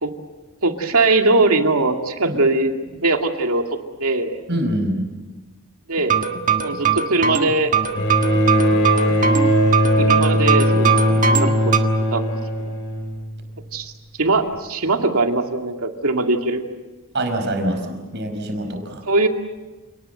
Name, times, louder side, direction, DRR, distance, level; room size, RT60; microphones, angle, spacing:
voice 1, 0.6-3.6 4.0-4.4 5.9-6.2 6.6-7.7 10.0-11.8 12.1-12.4 13.7-13.9 14.2-16.6 19.1-19.3, right 2 dB, 70° right, 4 dB, 2.3 m, -20 dB
voice 2, 4.5-5.1 17.1-19.0, right 1 dB, 50° right, 5 dB, 5.1 m, -24 dB
sound 1, 5.9-11.8, right 6 dB, 35° right, 1.6 m, -21 dB
Bowed string instrument, 7.9-13.4 14.5-14.6, equal, 60° left, 3.7 m, -19 dB
29.0 x 19.0 x 8.0 m, 1.2 s
head